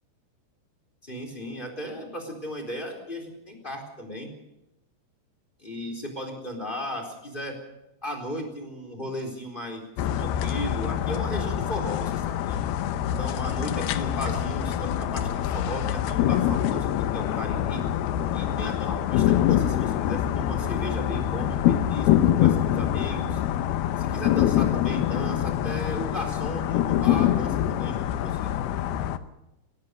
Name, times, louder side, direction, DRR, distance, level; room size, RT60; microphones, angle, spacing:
voice 1, 1.0-4.3 5.6-7.6 8.0-9.8 10.2-12.6 13.2-17.8 18.3-23.4 24.0-28.5, equal, 10° left, 4 dB, 3.8 m, -35 dB
sound 1, 10.0-29.2, left 11 dB, 75° left, 2.6 m, -25 dB
22.5 x 17.5 x 6.8 m, 0.91 s
omnidirectional pair, 4.9 m